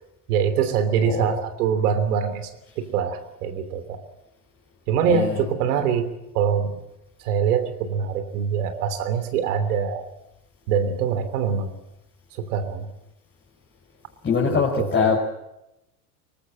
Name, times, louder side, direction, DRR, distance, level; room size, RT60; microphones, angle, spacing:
voice 1, 0.3-2.5 2.8-4.0 4.9-6.1 6.3-6.8 7.2-10.1 10.7-11.7 12.3-12.9 14.4-15.2, right 7 dB, 75° right, 10 dB, 3.2 m, -24 dB
voice 2, 5.1-5.4 14.2-15.2, left 6 dB, 25° left, -2 dB, 5.4 m, -22 dB
23.0 x 19.5 x 7.7 m, 0.88 s
hypercardioid pair, 95°, 46 cm